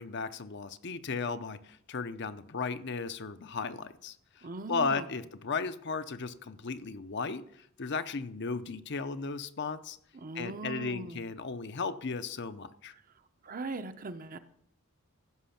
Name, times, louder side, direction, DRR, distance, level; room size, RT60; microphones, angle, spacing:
voice 1, 0.0-10.0 10.3-12.9, left 4 dB, 55° left, 11 dB, 0.7 m, -35 dB
voice 2, 4.4-5.0 10.2-11.2 13.4-14.4, right 3 dB, 40° right, 10 dB, 0.7 m, -39 dB
15.5 x 6.2 x 5.8 m, 0.68 s
head